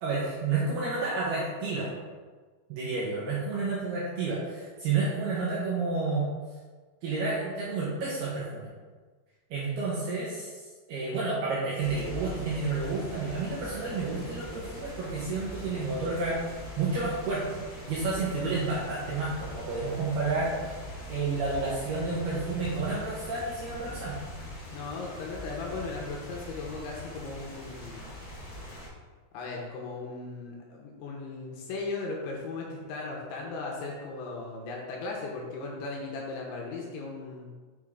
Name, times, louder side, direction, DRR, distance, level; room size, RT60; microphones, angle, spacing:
voice 1, 0.0-1.9 2.7-6.2 7.0-8.7 9.5-10.5 10.9-16.4 16.8-17.6 17.9-20.5 21.1-24.2, right 3 dB, 70° right, -6 dB, 2.5 m, -30 dB
sound 1, 11.8-28.9, left 1 dB, 55° left, 1.3 m, -42 dB
voice 2, 24.7-28.0 29.3-37.5, left 3 dB, 75° left, -1 dB, 3.0 m, -37 dB
6.6 x 6.5 x 3.7 m, 1.4 s
omnidirectional pair, 5.9 m